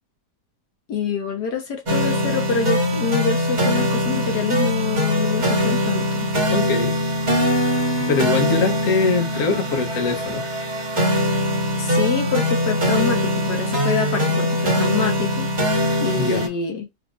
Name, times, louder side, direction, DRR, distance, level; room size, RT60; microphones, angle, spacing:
voice 1, 0.9-6.3 11.7-15.5 16.0-16.9, left 5 dB, 80° left, 1.5 m, -26 dB
sound 1, 1.9-16.5, equal, 30° right, 1.3 m, -22 dB
voice 2, 6.5-7.0 7.3-7.5 8.0-10.5 16.1-16.5, left 4 dB, 60° left, 1.2 m, -23 dB
3.7 x 3.0 x 2.4 m
omnidirectional pair, 1.7 m